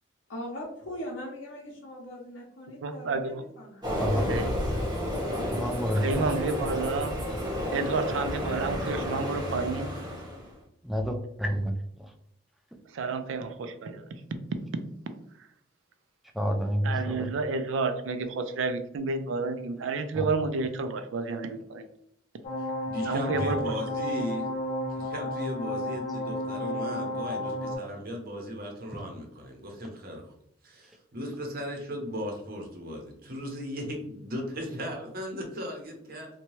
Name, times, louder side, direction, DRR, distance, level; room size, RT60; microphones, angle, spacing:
voice 1, 0.3-3.9, equal, 80° left, -4 dB, 0.7 m, -40 dB
voice 2, 2.8-3.4 4.3-4.6 6.0-7.1 7.7-9.9 12.9-14.1 15.4-15.5 16.8-21.9 23.1-23.8, right 4 dB, 80° right, 9 dB, 0.4 m, -30 dB
Train, 3.8-10.5, left 1 dB, 20° right, 0.8 m, -31 dB
voice 3, 4.0-4.4 5.5-6.3 10.8-11.7 12.0-12.1 16.3-17.3 20.1-20.2, equal, ahead, 4 dB, 0.3 m, -29 dB
sound 1, 22.4-27.8, left 1 dB, 40° left, 0.7 m, -32 dB
voice 4, 22.9-24.5 24.9-30.3 30.6-36.3, equal, 50° right, 2 dB, 0.7 m, -37 dB
2.7 x 2.2 x 3.0 m, 0.73 s
head